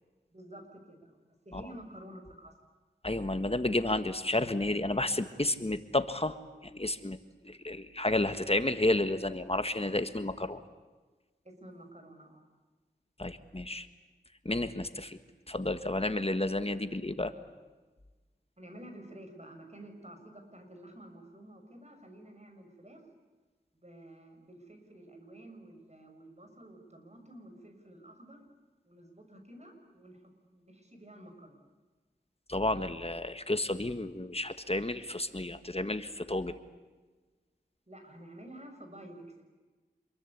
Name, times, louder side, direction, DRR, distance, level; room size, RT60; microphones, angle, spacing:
voice 1, 0.3-2.6 11.4-12.5 18.6-23.0 23.8-28.4 28.8-30.2 30.5-31.7 37.9-39.4, right 1 dB, 35° right, 4 dB, 6.2 m, -51 dB
voice 2, 3.0-6.3 6.6-7.2 7.4-10.6 13.2-13.9 14.4-15.2 15.5-17.3 32.5-36.6, left 2 dB, 35° left, 10 dB, 1.6 m, -31 dB
27.0 x 22.5 x 8.5 m, 1.3 s
wide cardioid pair, 50°, 18 cm